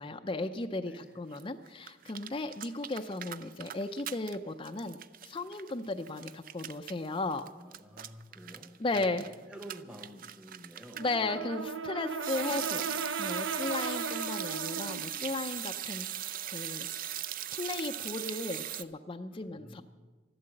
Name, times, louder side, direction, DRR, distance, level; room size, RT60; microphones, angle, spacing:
voice 1, 0.0-7.5 8.8-9.3 11.0-17.2 17.5-19.8, left 2 dB, 25° left, 6 dB, 0.5 m, -36 dB
voice 2, 0.8-1.2 7.6-11.0 19.3-19.8, equal, 5° right, 3 dB, 1.1 m, -49 dB
sound 1, 1.3-1.4 1.7-4.4 4.6-11.1 12.2-18.8, right 11 dB, 45° right, 0.5 m, -39 dB
Brass instrument, 10.9-15.1, right 4 dB, 70° right, 0.8 m, -36 dB
13.5 x 12.0 x 7.7 m, 1.3 s
head